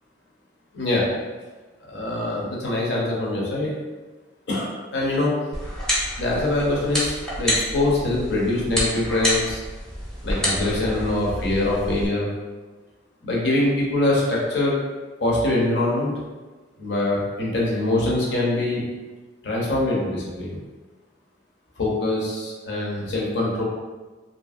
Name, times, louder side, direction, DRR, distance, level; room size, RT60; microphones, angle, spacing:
voice 1, 0.7-1.1 1.8-3.7 4.5-5.3 6.2-9.6 10.2-12.3 13.2-14.8 15.2-16.1 16.8-18.8 19.4-20.6 21.8-23.6, left 2 dB, 65° left, -4 dB, 0.8 m, -23 dB
sound 1, 5.5-12.1, equal, 5° left, 0.6 m, -28 dB
2.7 x 2.6 x 2.4 m, 1.3 s
head